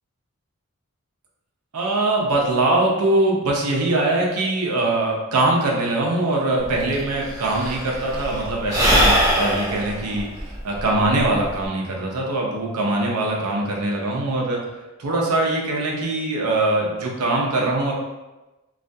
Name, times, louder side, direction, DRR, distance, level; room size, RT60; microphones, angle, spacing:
voice 1, 1.7-14.6 15.0-17.9, right 2 dB, 90° right, -1 dB, 0.6 m, -22 dB
Sigh / Breathing, 6.6-6.7 6.9-11.7, equal, 15° right, 0.5 m, -21 dB
2.4 x 2.2 x 2.6 m, 1.1 s
head